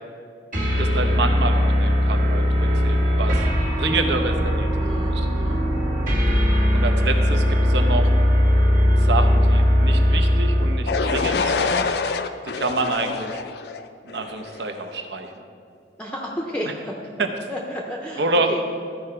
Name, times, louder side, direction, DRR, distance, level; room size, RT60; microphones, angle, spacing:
sound 1, 0.5-10.9, equal, 45° right, 1.6 m, -19 dB
voice 1, 0.8-3.4 3.8-5.3 6.7-8.1 9.0-11.8 12.4-13.4 14.0-15.3 16.6-16.7 17.2-17.3 18.2-18.6, right 3 dB, 75° right, 5 dB, 0.8 m, -27 dB
voice 2, 4.8-5.6 16.0-17.0 17.5-18.6, equal, 5° left, -1 dB, 0.6 m, -32 dB
sound 2, 10.9-14.8, left 5 dB, 60° left, 0.4 m, -26 dB
13.0 x 4.9 x 4.4 m, 2.4 s
head